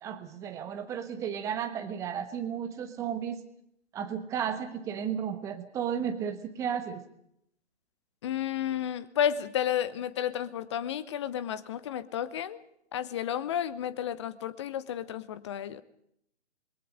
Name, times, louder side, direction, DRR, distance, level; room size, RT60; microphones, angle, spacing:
voice 1, 0.0-3.4 3.9-7.0, right 8 dB, 10° right, 9 dB, 1.1 m, -33 dB
voice 2, 8.2-12.6 12.9-15.8, left 10 dB, 25° left, 14 dB, 1.0 m, -32 dB
28.0 x 22.5 x 5.1 m, 0.73 s
figure-of-eight pair, 135°, 34 cm